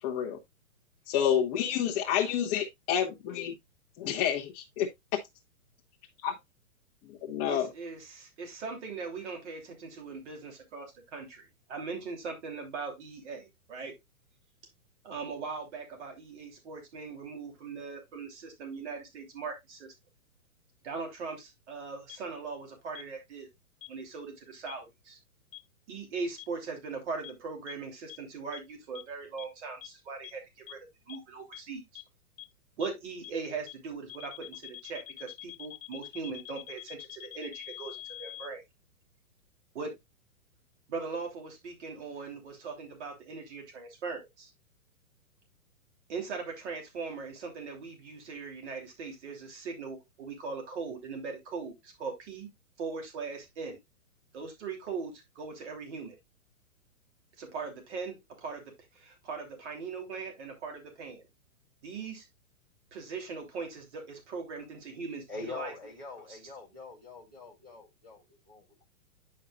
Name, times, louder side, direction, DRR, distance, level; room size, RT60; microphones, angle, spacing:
voice 1, 0.0-0.4 1.1-3.5 4.0-4.9 6.2-6.3 7.0-7.7, left 9 dB, 20° left, 0.7 m, -29 dB
voice 2, 7.4-13.9 15.0-19.9 20.8-23.5 23.9-25.2 25.9-30.4 30.7-30.8 31.1-32.0 32.8-38.6 39.7-39.9 40.9-44.5 46.1-52.5 52.8-53.8 54.3-56.2 57.4-61.2 61.8-62.3 62.9-65.7 66.3-66.4, right 4 dB, 55° right, 3.1 m, -40 dB
sound 1, 22.1-22.2 22.9-23.0 23.8-23.9 24.7-24.8 25.5-25.6 26.4-26.5 27.2-27.3 27.7-27.8 28.1-28.2 28.5-28.6 28.9-29.0 29.4-29.5 29.8-29.9 30.2-30.3 30.7-30.8 31.1-31.2 31.5-31.6 31.9-32.0 32.4-32.5 32.8-32.9 33.2-33.3 33.7-33.8 34.1-38.5, left 15 dB, 70° left, 1.3 m, -44 dB
voice 3, 65.3-68.8, left 4 dB, 10° right, 0.3 m, -44 dB
9.7 x 5.5 x 2.4 m
hypercardioid pair, 145°, 42 cm